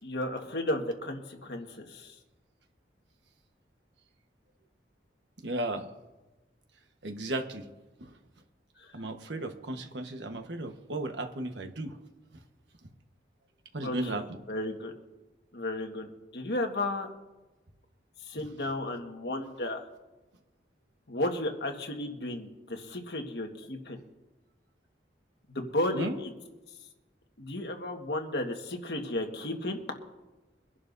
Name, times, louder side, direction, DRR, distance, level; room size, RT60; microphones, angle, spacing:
voice 1, 0.0-2.1 13.8-14.9 15.5-17.1 18.3-19.9 21.1-24.0 25.5-26.3 27.4-29.8, left 1 dB, 65° left, 3 dB, 1.6 m, -34 dB
voice 2, 5.4-5.9 7.0-7.7 8.0-8.2 8.9-12.0 13.7-14.4 25.9-26.1, right 1 dB, 85° right, 5 dB, 1.3 m, -35 dB
24.0 x 11.0 x 2.7 m, 1.1 s
head